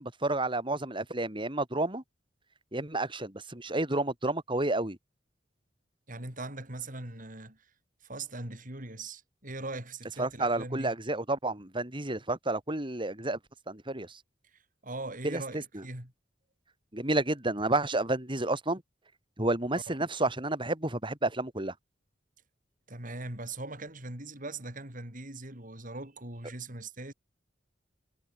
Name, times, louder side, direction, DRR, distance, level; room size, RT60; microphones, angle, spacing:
voice 1, 0.0-2.0 2.7-5.0 10.2-13.4 13.7-14.2 15.2-15.8 16.9-18.8 19.4-21.7, right 2 dB, 25° right, 4.1 m, -30 dB
voice 2, 6.1-7.6 8.0-11.0 14.8-16.1 19.9-20.0 22.9-27.1, right 2 dB, 45° right, 5.9 m, -40 dB
head